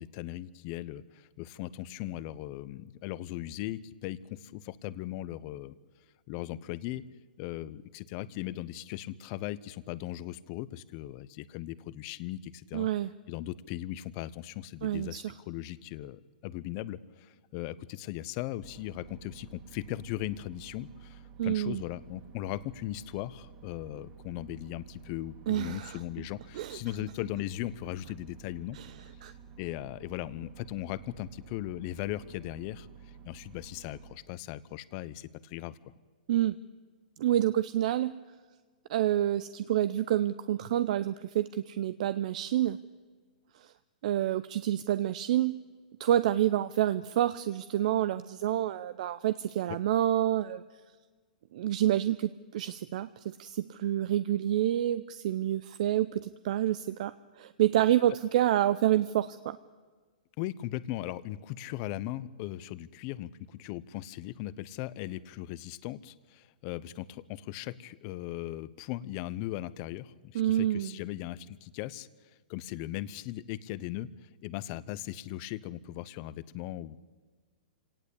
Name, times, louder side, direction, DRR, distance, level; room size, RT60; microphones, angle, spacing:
voice 1, 0.0-5.7 6.3-7.0 7.4-12.9 13.3-28.8 29.6-32.9 33.2-35.8 49.7-49.8 60.4-72.1 72.5-77.0, left 14 dB, 40° left, 17 dB, 0.9 m, -38 dB
voice 2, 12.7-13.1 14.8-15.2 21.4-21.8 25.5-26.0 26.6-26.8 28.8-28.9 29.2-29.3 36.3-36.6 37.2-38.1 38.9-42.8 43.6-43.7 44.0-45.6 46.0-50.6 51.5-59.6 70.3-70.9, right 12 dB, 55° right, 13 dB, 0.7 m, -28 dB
sound 1, 18.6-34.2, right 7 dB, 40° right, 2.9 m, -52 dB
26.0 x 18.0 x 8.5 m, 1.5 s
hypercardioid pair, 150°, 5 cm